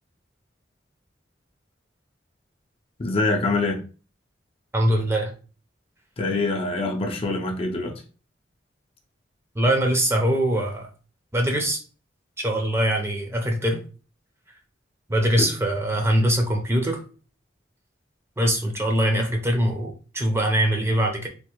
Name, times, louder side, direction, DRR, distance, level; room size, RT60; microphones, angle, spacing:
voice 1, 3.0-3.8 6.2-8.0 15.4-15.5, left 3 dB, 35° left, 0.5 m, -25 dB
voice 2, 4.7-5.3 9.6-10.9 11.3-11.8 12.4-13.8 15.1-17.0 18.4-21.3, right 1 dB, 15° right, 0.6 m, -22 dB
3.4 x 2.4 x 2.9 m
head